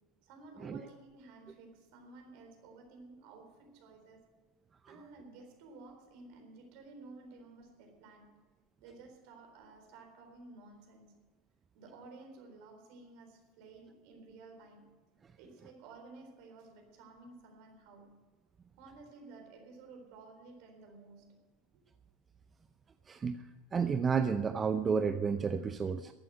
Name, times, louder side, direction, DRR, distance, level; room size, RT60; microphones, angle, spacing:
voice 1, 0.2-4.2 4.9-8.4 8.8-11.2 11.7-15.0 15.4-18.2 18.8-21.4, right 3 dB, 60° right, 4 dB, 4.0 m, -54 dB
voice 2, 23.1-23.4 23.7-26.1, right 6 dB, 25° right, 10 dB, 0.6 m, -31 dB
14.5 x 9.2 x 7.8 m, 1.3 s
hypercardioid pair, 90°, 0 cm